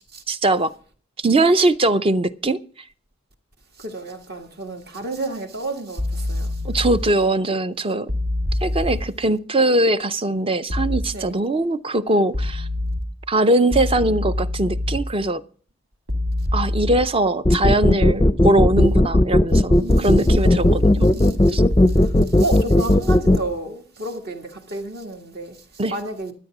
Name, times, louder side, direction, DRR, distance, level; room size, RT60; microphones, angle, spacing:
voice 1, 0.3-0.7 1.2-2.6 6.6-8.1 8.6-12.7 13.3-15.4 16.5-21.1 21.5-21.6 25.8-25.9, right 2 dB, 30° right, 0.5 m, -21 dB
voice 2, 3.8-6.6 11.1-11.3 19.8-21.6 21.9-22.1 22.4-25.6 25.9-26.3, right 2 dB, 55° right, 1.8 m, -31 dB
sound 1, 6.0-7.0 8.1-9.0 10.7-11.0 12.3-13.0 13.7-15.0 16.1-17.0 18.7-19.0 20.3-21.0 21.7-22.1, left 1 dB, 80° right, 2.0 m, -25 dB
sound 2, 17.4-23.4, left 1 dB, 20° left, 0.5 m, -15 dB
12.5 x 8.8 x 6.0 m
head